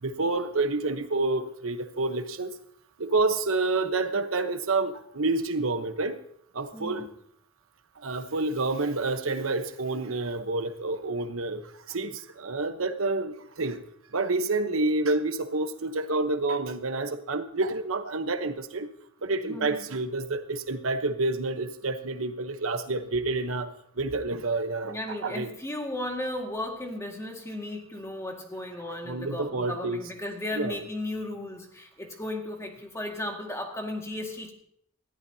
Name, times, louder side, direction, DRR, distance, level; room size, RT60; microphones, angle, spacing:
voice 1, 0.0-2.5 3.0-6.2 6.5-7.1 8.0-11.6 11.9-13.8 14.1-18.9 19.2-23.7 24.0-25.5 29.0-30.0 30.5-30.8, right 3 dB, 85° right, 8 dB, 1.0 m, -28 dB
voice 2, 6.7-7.1 19.4-19.9 24.8-34.5, left 1 dB, 15° left, 2 dB, 1.9 m, -35 dB
19.5 x 14.0 x 2.8 m, 0.67 s
head